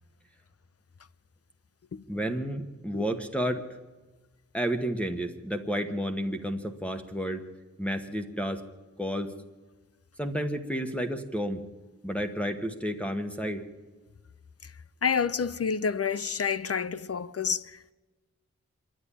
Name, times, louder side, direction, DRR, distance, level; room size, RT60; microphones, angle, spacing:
voice 1, 2.1-3.6 4.5-7.4 7.8-8.6 9.0-9.3 10.2-11.6 12.0-13.6, equal, 5° left, 1.1 m, -31 dB
voice 2, 15.0-17.9, left 6 dB, 55° left, 0.6 m, -29 dB
25.5 x 10.5 x 9.9 m
wide cardioid pair, 100°, 30 cm